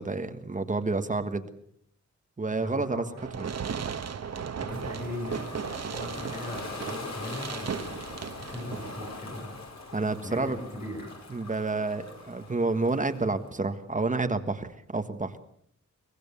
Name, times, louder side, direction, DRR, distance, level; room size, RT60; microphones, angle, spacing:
voice 1, 0.0-1.5 2.4-3.0 3.4-3.5 9.9-10.6 11.3-15.4, right 3 dB, 25° right, 8 dB, 1.5 m, -29 dB
voice 2, 2.5-3.1 4.6-5.5 5.8-9.5 10.2-11.1, left 1 dB, 25° left, 1 dB, 7.4 m, -39 dB
Fireworks, 3.2-9.2, right 6 dB, 60° right, 1.2 m, -36 dB
Ocean, 4.7-13.5, left 3 dB, 65° left, 5.9 m, -42 dB
23.5 x 20.5 x 6.9 m, 0.66 s
wide cardioid pair, 160°, 30 cm